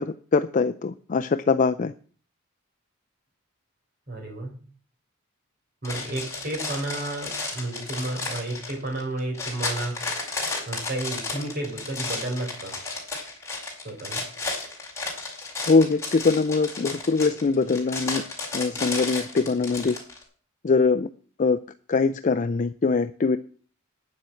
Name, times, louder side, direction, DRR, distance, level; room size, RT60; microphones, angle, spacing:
voice 1, 0.0-1.9 15.6-18.2 18.5-20.0 20.6-21.1 21.4-21.6 21.9-23.4, left 4 dB, 35° left, 9 dB, 0.4 m, -22 dB
voice 2, 4.1-4.6 5.8-10.0 10.7-12.7 13.8-14.2, right 2 dB, 45° right, 2 dB, 4.1 m, -32 dB
sound 1, 5.8-20.2, left 3 dB, 15° left, 4.3 m, -33 dB
9.7 x 7.3 x 7.6 m, 0.43 s
head